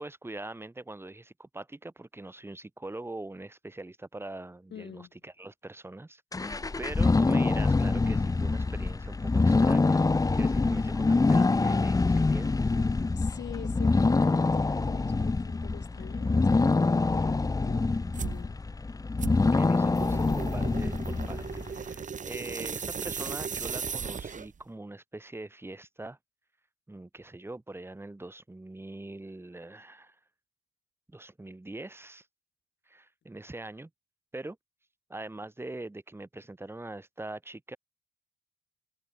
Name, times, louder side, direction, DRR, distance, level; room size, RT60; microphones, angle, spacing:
voice 1, 0.0-10.1 10.3-12.5 19.5-26.2 26.9-30.2 31.1-32.3 32.9-33.9 34.3-34.6 35.1-37.8, right 2 dB, 10° right, 2.1 m, -42 dB
voice 2, 4.7-5.1 13.1-18.6, left 9 dB, 60° left, 3.5 m, -45 dB
sound 1, 6.3-21.7, left 3 dB, 15° left, 0.9 m, -25 dB
sound 2, 18.1-18.4 19.2-24.6, right 6 dB, 40° right, 2.2 m, -37 dB
cardioid pair, 90°, 20 cm